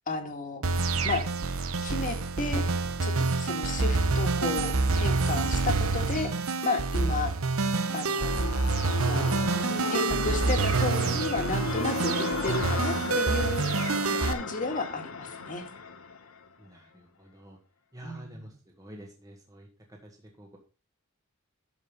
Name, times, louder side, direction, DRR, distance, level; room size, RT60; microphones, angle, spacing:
voice 1, 0.1-0.6 1.0-1.2 1.8-2.6 3.0-3.1 3.4-6.3 6.6-7.3 7.9-8.4 9.0-9.4 9.9-12.1 12.4-13.8 14.2-15.6 18.0-18.5, left 3 dB, 40° left, 5 dB, 2.1 m, -33 dB
sound 1, 0.6-14.3, right 3 dB, 80° right, 0.9 m, -27 dB
sound 2, 7.8-16.5, left 4 dB, 75° left, 1.2 m, -35 dB
voice 2, 16.6-17.6 17.9-20.6, right 1 dB, 15° right, 1 dB, 1.8 m, -48 dB
12.0 x 5.5 x 5.3 m, 0.33 s
head